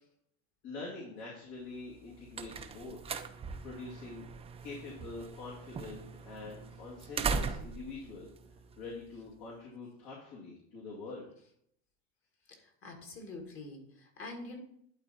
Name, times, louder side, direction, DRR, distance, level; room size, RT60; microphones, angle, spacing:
voice 1, 0.6-3.0 3.6-4.3 4.6-8.3 8.8-11.3, left 3 dB, 60° left, -4 dB, 2.7 m, -45 dB
sound 1, 1.9-9.3, right 5 dB, 15° right, 0.5 m, -40 dB
voice 2, 12.6-14.6, left 2 dB, 40° left, 3 dB, 2.2 m, -45 dB
11.5 x 4.2 x 4.3 m, 0.69 s
supercardioid pair, 125°, 35 cm